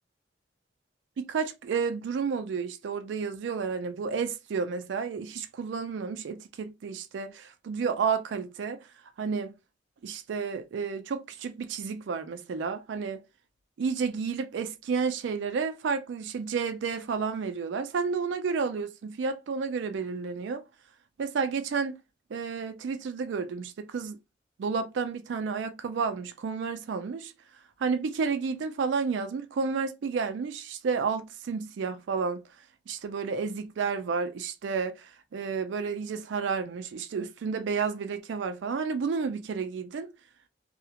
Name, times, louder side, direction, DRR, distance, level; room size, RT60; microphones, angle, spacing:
voice 1, 1.3-8.8 9.2-9.5 10.0-13.2 13.8-20.6 21.2-21.9 22.3-24.2 24.6-27.3 27.8-32.4 32.9-40.1, right 5 dB, 80° right, 0.4 m, -31 dB
2.4 x 2.1 x 2.8 m
head